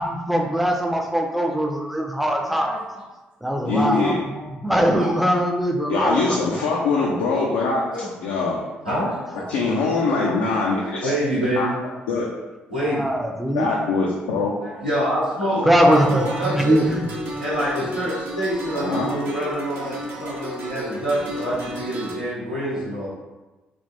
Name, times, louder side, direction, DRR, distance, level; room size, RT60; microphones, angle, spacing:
voice 1, 0.0-2.8 3.4-6.2 12.8-13.7 15.7-17.0, equal, ahead, 2 dB, 0.5 m, -21 dB
voice 2, 2.4-3.0 5.0-5.1 7.9-8.1 8.8-9.4 10.6-11.7 12.7-13.1 14.6-16.8 17.4-23.1, equal, 90° right, -10 dB, 0.8 m, -26 dB
voice 3, 3.6-4.3 5.9-7.8 8.2-8.6 9.5-11.1 11.5-11.7 12.1-12.3 13.5-14.6 15.6-15.7 18.7-19.1, left 3 dB, 65° left, -3 dB, 0.4 m, -23 dB
sound 1, 15.9-22.1, right 1 dB, 55° right, 0.6 m, -33 dB
3.3 x 2.4 x 2.6 m, 1.1 s
figure-of-eight pair, 45°, 5 cm